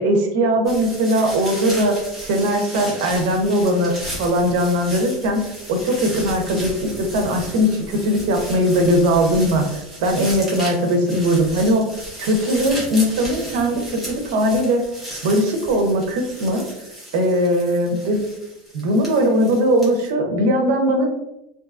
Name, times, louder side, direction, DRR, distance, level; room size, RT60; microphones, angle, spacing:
voice 1, 0.0-9.6 10.0-11.8 12.2-14.8 15.2-16.6 17.1-18.2 18.7-21.1, equal, 60° right, 4 dB, 0.5 m, -19 dB
sound 1, 0.6-20.1, equal, 5° left, 0.6 m, -35 dB
2.6 x 2.3 x 2.3 m, 0.87 s
supercardioid pair, 175°, 0 cm